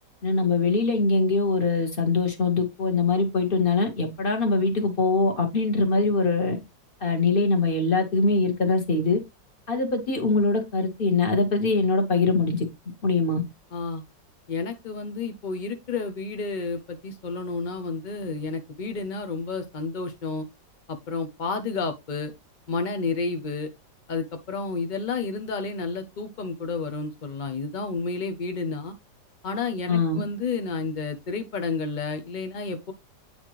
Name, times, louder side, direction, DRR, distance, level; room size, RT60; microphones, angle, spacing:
voice 1, 0.2-6.6 7.0-9.2 9.7-12.7 13.0-13.4 29.9-30.2, left 3 dB, 35° left, 1.3 m, -23 dB
voice 2, 13.7-14.0 14.5-20.5 20.9-22.3 22.7-23.7 24.1-29.0 29.4-32.9, left 4 dB, 65° left, 0.4 m, -31 dB
8.7 x 4.2 x 3.0 m
omnidirectional pair, 1.9 m